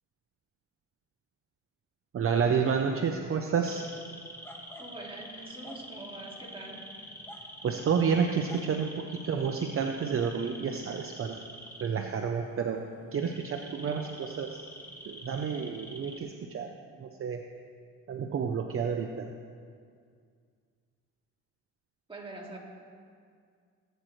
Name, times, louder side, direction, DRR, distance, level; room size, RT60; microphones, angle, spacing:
voice 1, 2.1-3.8 7.6-11.4 11.8-12.8 13.1-14.6 15.1-16.7 17.0-17.4 18.1-19.3, right 6 dB, 45° right, 3 dB, 0.8 m, -30 dB
sound 1, 3.6-16.2, equal, 10° left, 1.5 m, -46 dB
voice 2, 4.8-6.9 22.1-22.6, right 2 dB, 20° right, -3 dB, 2.5 m, -44 dB
19.0 x 9.1 x 3.3 m, 2.2 s
cardioid pair, 90°, 30 cm